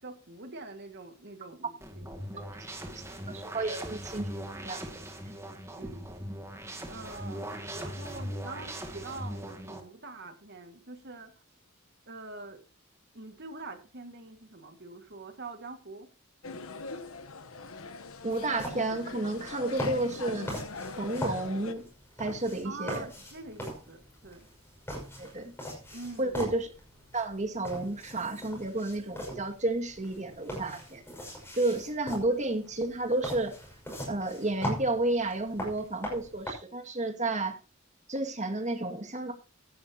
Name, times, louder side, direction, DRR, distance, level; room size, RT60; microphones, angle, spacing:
voice 1, 0.0-2.9 5.7-6.1 6.9-11.3 12.1-12.6 13.1-16.1 22.6-24.5 25.9-26.3, right 3 dB, 50° right, 6 dB, 2.1 m, -45 dB
sound 1, 1.8-9.8, right 1 dB, 15° right, 2.3 m, -40 dB
voice 2, 3.3-4.3 4.6-5.0 18.2-20.6 21.0-21.9 22.2-23.1 25.2-25.5 26.2-26.7 27.1-31.0 31.6-33.5 34.1-37.6 38.1-39.3, right 2 dB, 35° right, 4 dB, 2.3 m, -31 dB
sound 2, 16.4-21.7, left 3 dB, 80° left, 1.2 m, -41 dB
sound 3, 18.3-36.5, equal, 10° left, 6.0 m, -41 dB
16.0 x 11.0 x 3.0 m, 0.34 s
head